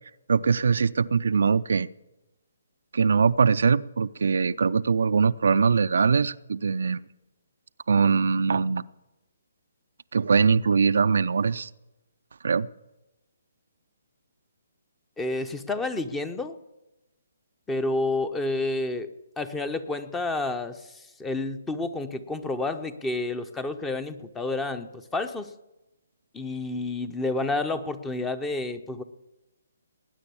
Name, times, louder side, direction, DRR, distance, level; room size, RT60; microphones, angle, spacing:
voice 1, 0.3-1.9 2.9-7.0 7.9-8.8 10.1-11.7 12.4-12.7, right 5 dB, 70° right, 12 dB, 0.4 m, -22 dB
voice 2, 15.2-16.6 17.7-19.1 19.4-25.5 26.3-29.0, left 2 dB, 10° left, 12 dB, 0.8 m, -30 dB
20.0 x 9.6 x 7.1 m, 0.98 s
figure-of-eight pair, 145°, 0 cm